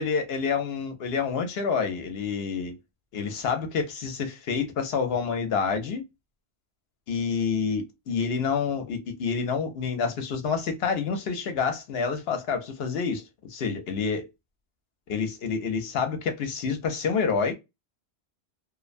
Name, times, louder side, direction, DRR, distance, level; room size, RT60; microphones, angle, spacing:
voice 1, 0.0-2.8 3.1-6.0 7.1-13.2 13.5-14.3 15.1-17.5, left 5 dB, 65° left, 0.8 m, -28 dB
2.5 x 2.1 x 2.4 m
omnidirectional pair, 1.1 m